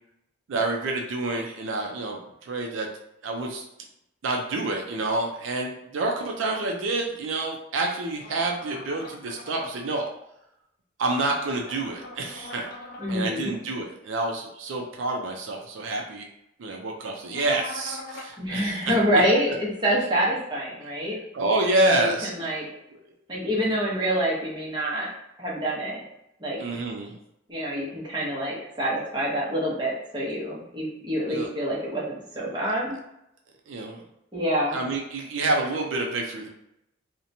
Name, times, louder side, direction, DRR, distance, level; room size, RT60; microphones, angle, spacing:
voice 1, 0.5-2.9 3.2-3.6 4.2-10.1 11.0-12.7 13.1-16.3 16.6-18.8 19.1-19.2 21.3-22.5 22.9-23.0 26.6-27.1 31.3-31.5 33.7-34.0 34.7-36.5, right 2 dB, 80° right, 1 dB, 0.4 m, -28 dB
sound 1, 8.2-9.7 11.4-13.2 17.3-18.3, left 2 dB, 50° left, 0.5 m, -41 dB
voice 2, 13.0-13.5 18.4-21.2 21.9-22.7 23.3-25.1 25.4-26.0 26.4-26.6 27.5-33.0 34.3-34.8, equal, 25° right, -5 dB, 0.7 m, -26 dB
2.8 x 2.1 x 2.6 m, 0.82 s
head